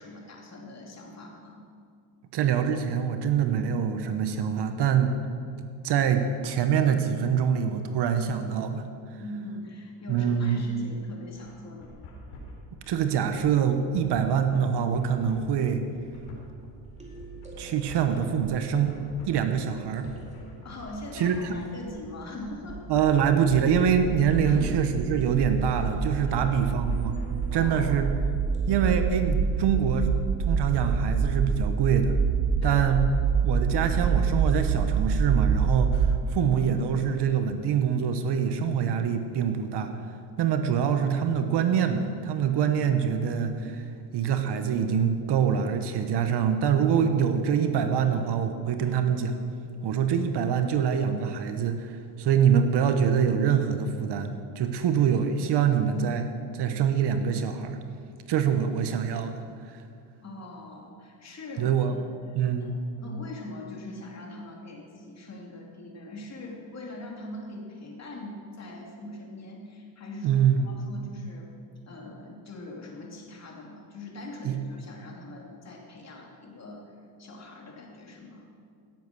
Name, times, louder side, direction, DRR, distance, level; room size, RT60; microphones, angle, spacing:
voice 1, 0.0-1.7 9.2-12.0 20.6-22.8 24.4-24.8 26.3-26.5 27.5-27.9 32.6-32.9 60.2-62.0 62.6-62.7 63.0-71.5 71.9-76.9 77.2-78.5, left 2 dB, 35° left, -1 dB, 2.8 m, -42 dB
voice 2, 2.3-5.1 5.8-8.8 10.1-10.6 12.9-15.8 17.6-18.9 19.3-20.1 21.1-21.5 22.9-27.1 27.5-28.1 28.7-30.1 30.5-32.1 32.6-33.0 33.4-39.9 40.4-43.8 44.1-49.3 49.8-56.3 56.5-57.8 58.3-59.4 61.6-61.9 62.3-62.7 70.2-70.8 74.4-74.5, right 7 dB, 60° right, 7 dB, 1.2 m, -25 dB
sound 1, 11.4-27.5, left 2 dB, 80° left, 4.2 m, -47 dB
sound 2, 16.0-29.4, right 2 dB, 15° right, 2.2 m, -49 dB
sound 3, 22.7-36.2, right 6 dB, 30° right, 0.7 m, -27 dB
16.5 x 7.7 x 6.2 m, 2.3 s
cardioid pair, 105°, 45 cm